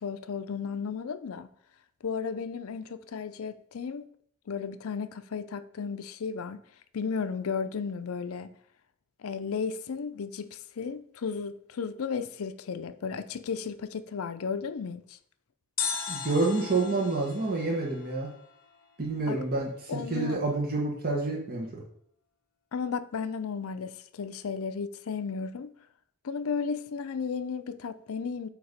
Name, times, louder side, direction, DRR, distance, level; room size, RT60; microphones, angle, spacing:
voice 1, 0.0-1.5 2.0-4.0 4.5-6.6 6.9-8.5 9.2-15.2 19.3-19.4 19.9-20.4 22.7-25.7 26.2-28.5, left 5 dB, 70° left, 0.5 m, -34 dB
sound 1, 15.8-18.9 19.1-19.2, left 7 dB, 40° left, 1.2 m, -37 dB
voice 2, 16.1-18.3 19.0-21.8, right 3 dB, 45° right, 1.1 m, -28 dB
8.2 x 2.9 x 5.1 m
head